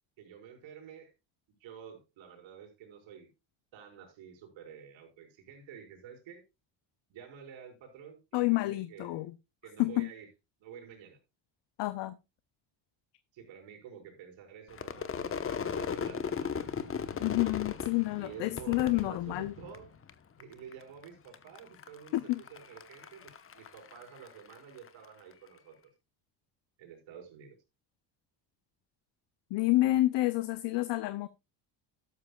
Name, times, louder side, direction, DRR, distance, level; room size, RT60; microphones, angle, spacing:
voice 1, 0.2-1.1 1.6-3.3 3.7-6.4 7.1-9.2 9.6-10.3 10.6-11.2 13.3-16.7 18.2-19.9 20.4-25.9 26.8-27.6, right 7 dB, 70° right, 4 dB, 5.2 m, -50 dB
voice 2, 8.3-9.3 9.8-10.1 11.8-12.2 17.2-19.5 22.1-22.4 29.5-31.3, left 18 dB, 65° left, 14 dB, 0.8 m, -29 dB
Crowd / Fireworks, 14.7-20.1 20.4-21.0 21.3-24.9, left 6 dB, 30° left, 1.1 m, -37 dB
12.5 x 12.0 x 2.3 m, 0.25 s
cardioid pair, 120°, 47 cm